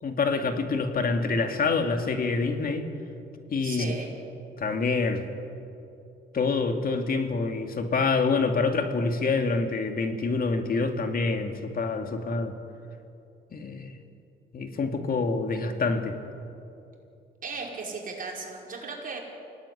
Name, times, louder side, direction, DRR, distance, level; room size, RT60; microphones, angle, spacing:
voice 1, 0.0-2.9 3.5-3.9 4.6-5.3 6.3-12.5 13.5-13.9 14.5-16.2, left 4 dB, 45° left, 5 dB, 2.5 m, -26 dB
voice 2, 3.6-4.1 17.4-19.2, right 4 dB, 45° right, -1 dB, 5.4 m, -36 dB
25.0 x 17.5 x 9.9 m, 2.7 s
cardioid pair, 90°, 20 cm